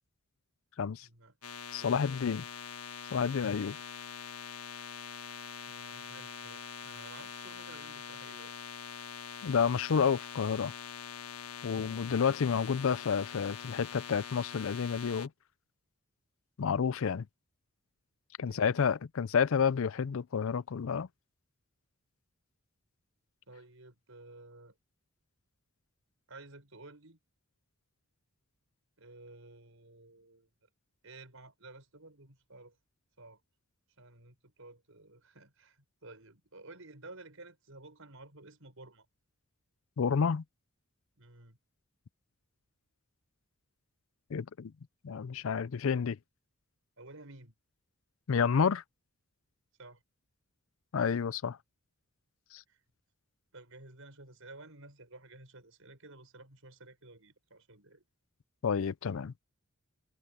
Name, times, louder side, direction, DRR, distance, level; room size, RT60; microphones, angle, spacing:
voice 1, 1.0-1.4 1.7-2.2 5.7-8.6 18.4-18.8 23.5-24.8 26.3-27.2 29.0-30.5 31.0-32.8 33.2-33.4 34.0-39.1 41.2-41.6 47.0-47.5 49.8-50.0 52.7-52.8 53.5-58.0, right 2 dB, 65° right, 6.2 m, -53 dB
sound 1, 1.4-15.3, left 7 dB, 80° left, 1.5 m, -44 dB
voice 2, 1.7-2.4 3.1-3.8 9.4-10.7 11.6-15.3 16.6-17.3 18.4-21.1 40.0-40.4 44.3-44.7 45.0-46.2 48.3-48.8 50.9-51.6 52.5-52.6 58.6-59.3, left 6 dB, 65° left, 0.4 m, -30 dB
head